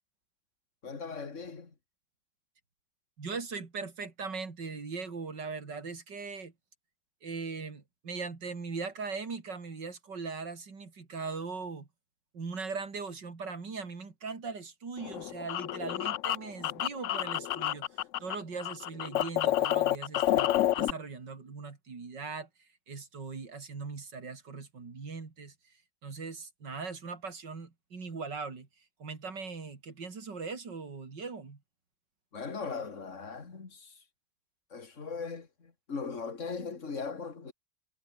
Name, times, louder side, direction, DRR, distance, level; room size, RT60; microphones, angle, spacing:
voice 1, 0.8-1.7 32.3-34.0 34.7-37.5, left 5 dB, 40° left, 2.8 m, -39 dB
voice 2, 3.2-6.5 7.2-11.9 12.3-25.7 26.0-28.7 29.0-31.6, right 4 dB, 70° right, 3.9 m, -40 dB
sound 1, 15.0-18.3 18.6-20.9, left 12 dB, 90° left, 0.6 m, -29 dB
omnidirectional pair, 2.0 m